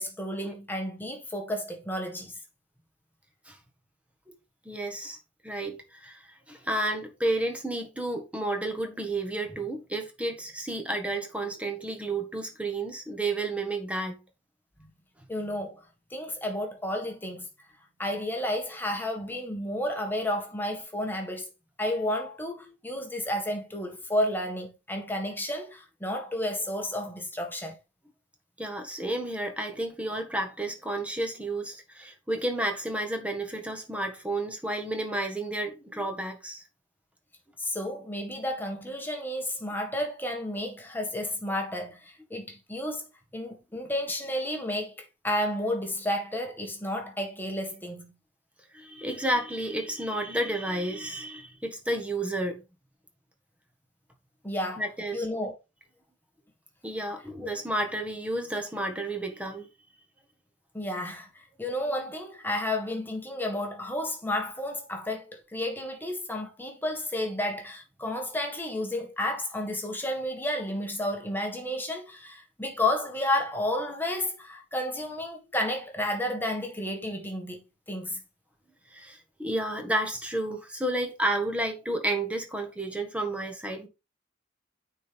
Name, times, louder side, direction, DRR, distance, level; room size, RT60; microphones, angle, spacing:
voice 1, 0.0-2.4 15.3-15.8 16.1-17.5 18.0-21.5 21.8-27.8 37.6-43.0 43.3-48.1 54.4-54.8 55.1-55.5 57.4-57.5 60.7-77.6 77.9-78.2, left 1 dB, 10° left, 1.7 m, -31 dB
voice 2, 4.6-5.2 5.4-14.2 28.6-36.6 48.7-52.6 54.8-55.3 56.8-59.7 78.9-83.9, right 1 dB, 5° right, 1.5 m, -31 dB
9.1 x 4.6 x 3.5 m
head